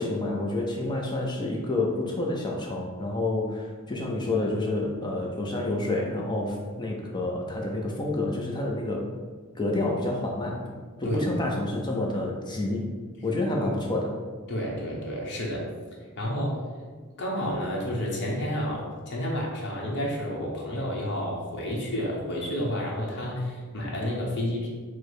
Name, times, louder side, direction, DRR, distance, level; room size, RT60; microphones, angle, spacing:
voice 1, 0.0-9.1 9.6-12.9 13.2-14.2, left 2 dB, 20° left, -1 dB, 0.5 m, -29 dB
voice 2, 14.5-15.6 16.2-16.6 17.2-24.7, equal, 55° left, -3 dB, 0.9 m, -30 dB
4.5 x 2.1 x 4.7 m, 1.5 s
head